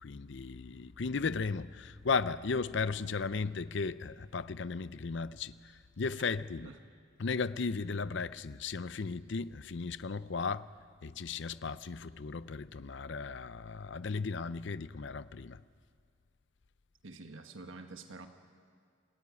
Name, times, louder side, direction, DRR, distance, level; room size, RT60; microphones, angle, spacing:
voice 1, 0.0-6.7 7.2-10.7 11.0-15.6, left 4 dB, 60° left, 0.6 m, -35 dB
voice 2, 17.0-18.3, right 3 dB, 70° right, 1.4 m, -47 dB
26.5 x 15.5 x 9.7 m
head